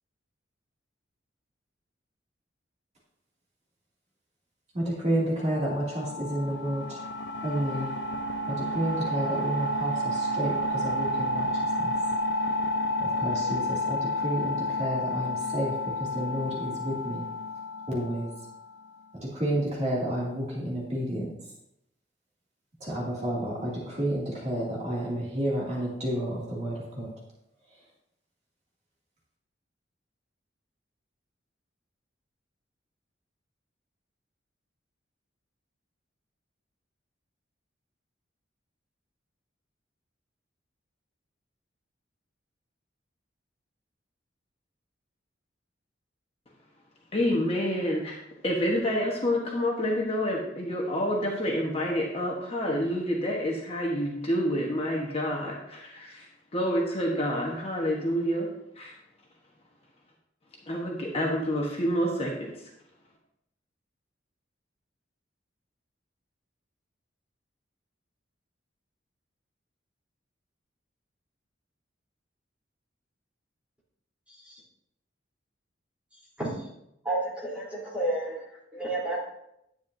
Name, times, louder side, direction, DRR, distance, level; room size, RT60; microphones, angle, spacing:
voice 1, 4.7-7.0 7.4-7.9 8.4-11.9 13.0-17.3 17.9-18.3 19.2-21.3 22.8-27.1, right 1 dB, 35° right, -5 dB, 2.4 m, -31 dB
sound 1, 5.4-18.9, left 1 dB, 65° left, 0.7 m, -30 dB
voice 2, 47.1-58.5 58.8-58.9 60.7-62.5, equal, 30° left, -1 dB, 1.2 m, -28 dB
voice 3, 77.0-78.4 78.7-79.2, right 1 dB, 5° right, -7 dB, 3.5 m, -30 dB
10.5 x 9.0 x 2.7 m, 0.80 s
head